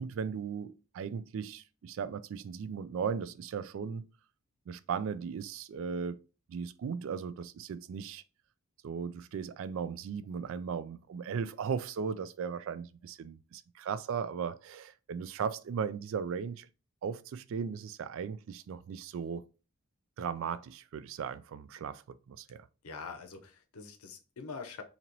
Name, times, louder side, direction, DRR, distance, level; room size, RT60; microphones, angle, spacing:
voice 1, 0.0-4.1 4.7-6.2 6.5-8.2 8.8-16.7 17.0-19.5 20.2-22.7, right 6 dB, 65° right, 0.3 m, -37 dB
voice 2, 22.8-24.8, left 4 dB, 90° left, 0.7 m, -44 dB
3.0 x 2.8 x 3.8 m
head